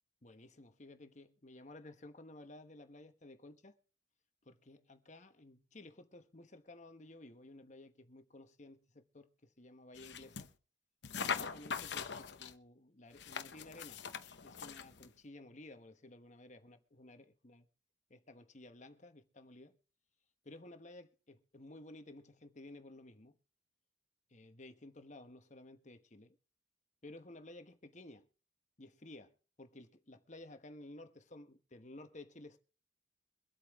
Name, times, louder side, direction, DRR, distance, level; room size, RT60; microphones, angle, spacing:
voice 1, 0.2-3.7 4.5-10.5 11.3-14.0 14.4-17.6 18.1-19.8 20.4-23.4 24.3-26.4 27.0-28.3 28.8-32.6, left 2 dB, 40° left, 1.2 m, -54 dB
sound 1, 10.0-10.5 11.0-12.5 13.2-15.1, left 6 dB, 60° left, 0.9 m, -42 dB
24.0 x 8.4 x 3.6 m
head